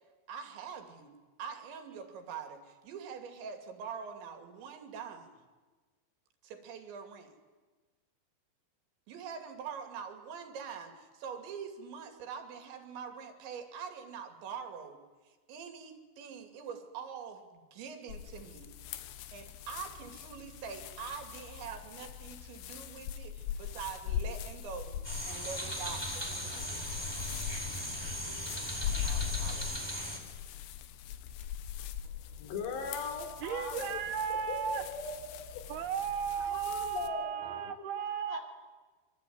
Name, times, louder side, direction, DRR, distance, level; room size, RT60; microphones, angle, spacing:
voice 1, 0.3-5.3 6.4-7.3 9.1-18.7 19.0-25.0 25.3-26.8 29.0-30.0, right 6 dB, 90° right, 4.9 m, -44 dB
sound 1, 18.1-37.1, left 10 dB, 90° left, 3.4 m, -41 dB
sound 2, 25.0-30.2, equal, 5° left, 3.4 m, -38 dB
voice 2, 32.4-34.0 34.3-35.6 36.4-38.4, left 4 dB, 75° left, 5.4 m, -40 dB
voice 3, 33.4-34.8 35.7-38.4, right 8 dB, 70° right, 3.0 m, -35 dB
26.0 x 24.0 x 9.5 m
omnidirectional pair, 5.0 m